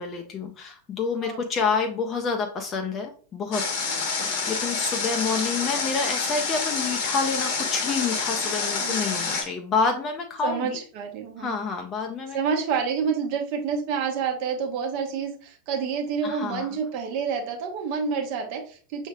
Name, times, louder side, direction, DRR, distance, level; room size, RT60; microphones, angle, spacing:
voice 1, 0.0-10.8 11.4-12.4 16.2-16.7, left 5 dB, 25° left, 4 dB, 0.5 m, -28 dB
voice 2, 1.2-1.7 8.8-9.3 10.4-11.5 12.3-19.1, right 6 dB, 45° right, 3 dB, 1.0 m, -29 dB
Water, 3.5-9.4, left 4 dB, 45° left, 1.0 m, -27 dB
6.2 x 3.1 x 2.3 m, 0.41 s
figure-of-eight pair, 90°, 0 cm